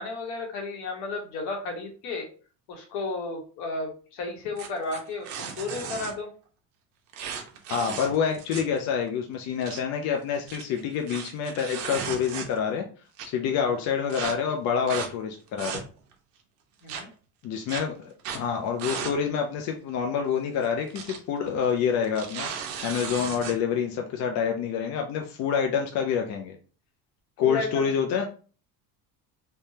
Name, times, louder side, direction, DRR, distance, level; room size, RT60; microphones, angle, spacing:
voice 1, 0.0-2.3 2.7-6.3 16.8-17.1 27.4-27.9, left 3 dB, 65° left, 2 dB, 1.2 m, -33 dB
sound 1, 4.6-6.1 7.1-8.8 9.1-9.2 9.4-9.8 10.3-12.7 13.2-13.3 14.1-14.3 14.9-15.1 15.5-16.1 16.9-17.0 17.7-17.8 18.2-18.4 18.8-19.2 19.5-19.6 20.6-21.2 21.5-21.7 22.0-23.6, right 7 dB, 75° right, 0.8 m, -35 dB
voice 2, 7.7-12.9 13.2-15.8 17.4-26.6 27.4-28.3, left 7 dB, 45° left, 3 dB, 0.4 m, -27 dB
3.5 x 2.2 x 2.7 m, 0.39 s
cardioid pair, 155°, 39 cm